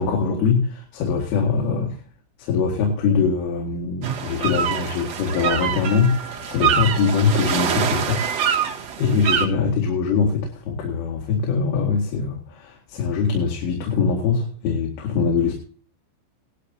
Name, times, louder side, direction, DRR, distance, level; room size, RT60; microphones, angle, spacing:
voice 1, 0.0-2.0 2.4-8.3 8.6-15.5, left 5 dB, 90° left, 0 dB, 4.6 m, -22 dB
sound 1, 4.0-9.5, right 8 dB, 70° right, 1.5 m, -25 dB
18.0 x 13.5 x 2.8 m, 0.41 s
omnidirectional pair, 5.6 m